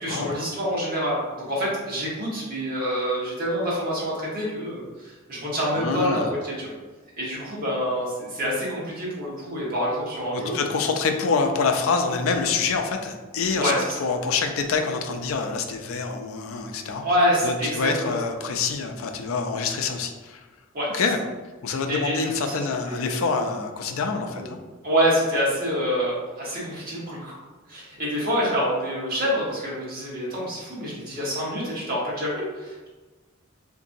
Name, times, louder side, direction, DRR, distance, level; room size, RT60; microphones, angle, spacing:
voice 1, 0.0-6.7 7.2-10.6 13.5-13.9 17.0-18.2 20.7-20.9 21.9-23.4 24.3-24.5 24.8-27.3 27.7-32.9, equal, 45° right, -6 dB, 1.2 m, -27 dB
voice 2, 5.7-6.3 10.3-13.7 14.0-17.0 17.4-20.4 20.9-21.2 21.6-24.6, left 4 dB, 85° left, 5 dB, 0.4 m, -26 dB
3.8 x 2.6 x 2.6 m, 1.3 s
head